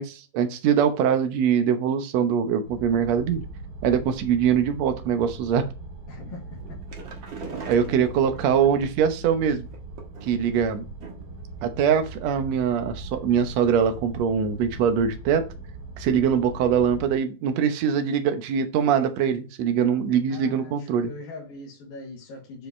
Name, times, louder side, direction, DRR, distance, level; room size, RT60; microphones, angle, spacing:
voice 1, 0.0-3.4 3.8-5.7 7.7-9.7 10.3-10.9 11.6-15.4 16.0-21.1, right 7 dB, 65° right, 8 dB, 1.8 m, -23 dB
sound 1, 2.6-17.1, right 3 dB, 85° right, 4.7 m, -40 dB
voice 2, 6.1-6.6 20.3-22.7, left 2 dB, 85° left, -4 dB, 4.0 m, -41 dB
sound 2, 6.6-8.7 9.7-10.6 11.0-11.4 11.7-11.8 12.1-12.2, right 4 dB, 50° right, 1.6 m, -41 dB
10.5 x 4.9 x 3.2 m, 0.34 s
omnidirectional pair, 4.1 m